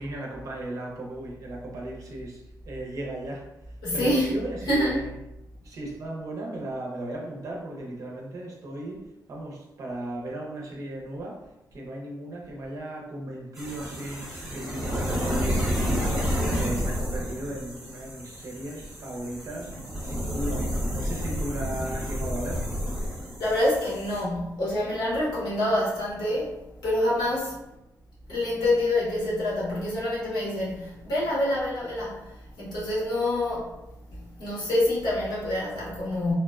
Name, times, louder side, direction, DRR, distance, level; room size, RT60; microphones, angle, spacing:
voice 1, 0.0-3.5 3.9-5.1 5.6-11.4 11.7-22.7, right 1 dB, 55° right, -2 dB, 0.6 m, -36 dB
voice 2, 3.8-4.3 4.6-5.0 23.0-27.6 28.3-33.7 34.1-36.3, left 1 dB, 80° left, -7 dB, 1.2 m, -27 dB
sound 1, 13.6-24.2, equal, 5° right, 0.8 m, -30 dB
2.8 x 2.1 x 2.3 m, 0.91 s
wide cardioid pair, 165°, 7 cm